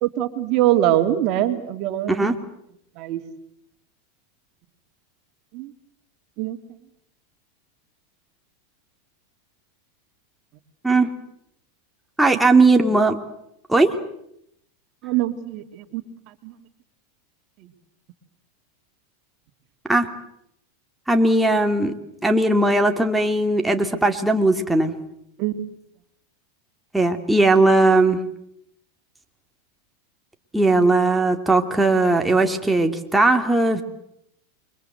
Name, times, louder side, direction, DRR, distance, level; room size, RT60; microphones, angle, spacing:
voice 1, 0.0-2.4 3.0-3.2 5.5-5.7 6.4-6.6 15.0-16.0 16.4-16.5 25.4-25.7, right 13 dB, 50° right, 7 dB, 2.8 m, -23 dB
voice 2, 12.2-13.2 13.7-13.9 19.9-20.1 21.1-21.9 22.2-24.9 26.9-28.2 30.5-33.8, right 2 dB, 5° right, 4 dB, 2.7 m, -18 dB
28.5 x 24.0 x 8.1 m, 0.77 s
hypercardioid pair, 100°, 0 cm